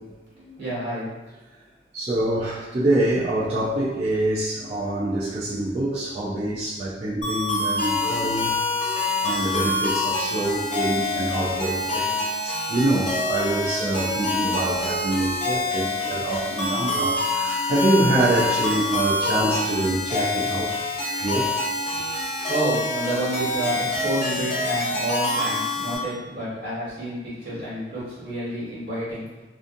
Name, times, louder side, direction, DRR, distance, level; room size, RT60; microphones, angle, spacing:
voice 1, 0.6-1.1 22.1-29.3, right 1 dB, 60° right, -10 dB, 1.5 m, -29 dB
voice 2, 1.9-8.6 9.2-20.8 21.2-21.5 22.4-22.5, right 1 dB, 35° right, -9 dB, 0.4 m, -25 dB
sound 1, 7.2-26.0, left 2 dB, 35° left, 1.0 m, -26 dB
2.5 x 2.4 x 2.5 m, 1.2 s
head